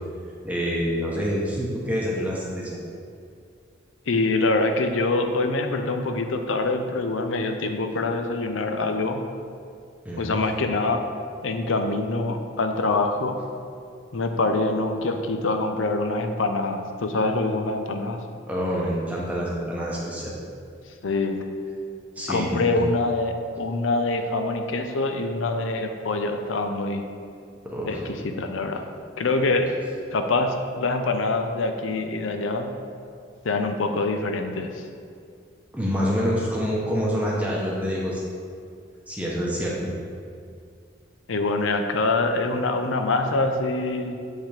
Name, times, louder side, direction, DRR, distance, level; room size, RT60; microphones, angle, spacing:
voice 1, 0.4-2.8 10.0-10.4 18.5-20.3 22.2-22.8 27.6-28.0 35.7-38.2 39.1-39.9, equal, 5° right, -5 dB, 0.8 m, -27 dB
voice 2, 4.1-9.2 10.2-11.0 11.4-13.4 14.1-18.2 21.0-21.4 22.3-27.0 27.9-28.8 29.2-29.7 30.1-32.7 33.4-34.8 41.3-44.3, left 2 dB, 85° left, 5 dB, 0.6 m, -25 dB
7.4 x 5.7 x 3.4 m, 2.3 s
head